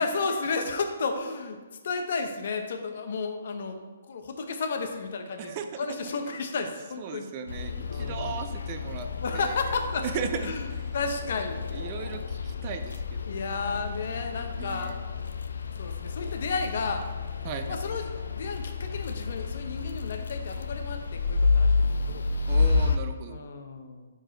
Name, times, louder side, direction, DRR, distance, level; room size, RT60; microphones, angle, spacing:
voice 1, 0.0-1.6 1.8-7.3 7.9-8.4 9.2-10.6 10.9-11.6 13.3-15.0 15.8-17.0 17.7-22.3 23.3-24.1, left 4 dB, 60° left, 6 dB, 0.7 m, -32 dB
voice 2, 5.4-6.1 7.0-9.1 9.3-9.5 10.0-10.8 11.7-13.3 14.6-15.0 17.4-17.8 22.5-23.4, right 7 dB, 30° right, 7 dB, 0.4 m, -37 dB
sound 1, 7.5-23.0, left 4 dB, 85° left, 0.5 m, -30 dB
4.8 x 4.7 x 4.5 m, 1.3 s
hypercardioid pair, 155°, 0 cm